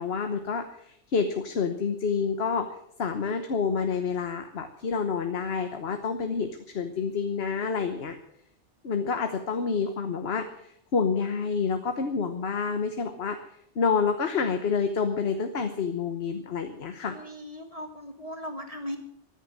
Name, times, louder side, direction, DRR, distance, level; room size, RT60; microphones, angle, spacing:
voice 1, 0.0-2.7 3.0-6.5 6.7-8.2 8.8-13.4 13.7-17.2, left 5 dB, 60° left, 6 dB, 1.3 m, -28 dB
voice 2, 17.1-19.0, equal, 30° left, 6 dB, 1.2 m, -38 dB
14.0 x 10.0 x 7.4 m, 0.73 s
omnidirectional pair, 1.2 m